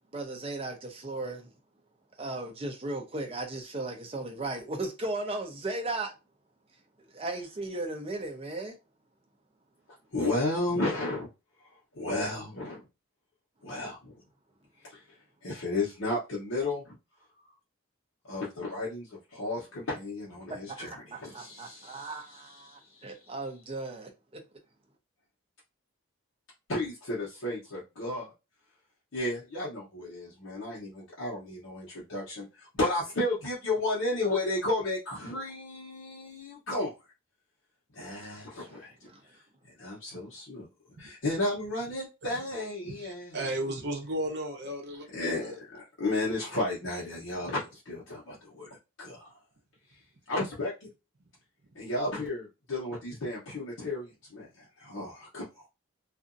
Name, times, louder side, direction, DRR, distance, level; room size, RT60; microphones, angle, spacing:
voice 1, 0.1-1.5 2.2-6.1 7.1-8.8 20.5-24.4 38.6-39.2, right 2 dB, 30° right, 0.7 m, -36 dB
voice 2, 10.1-11.3 11.9-12.8 13.6-14.2 14.8-15.0 15.4-17.0 18.3-23.1 26.7-28.3 29.1-36.9 37.9-39.1 39.8-40.7 41.0-43.7 45.1-48.7 49.0-49.3 50.3-50.9 51.7-55.7, left 2 dB, 70° left, 0.9 m, -33 dB
voice 3, 42.8-45.6, right 1 dB, 55° right, 0.9 m, -35 dB
2.7 x 2.5 x 2.5 m
head